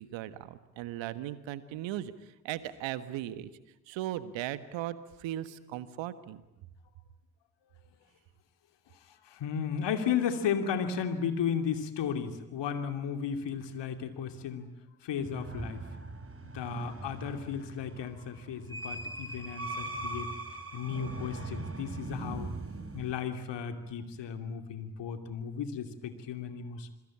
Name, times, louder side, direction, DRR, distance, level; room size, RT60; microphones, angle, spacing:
voice 1, 0.0-3.5 3.9-6.4, right 13 dB, 70° right, 13 dB, 1.5 m, -38 dB
voice 2, 9.1-14.7 15.0-15.8 16.5-20.3 20.7-22.5 22.9-26.9, left 7 dB, 65° left, 7 dB, 2.9 m, -34 dB
sound 1, 15.2-23.1, right 2 dB, 30° right, 3.7 m, -40 dB
27.0 x 22.0 x 8.8 m, 0.95 s
hypercardioid pair, 40°, 47 cm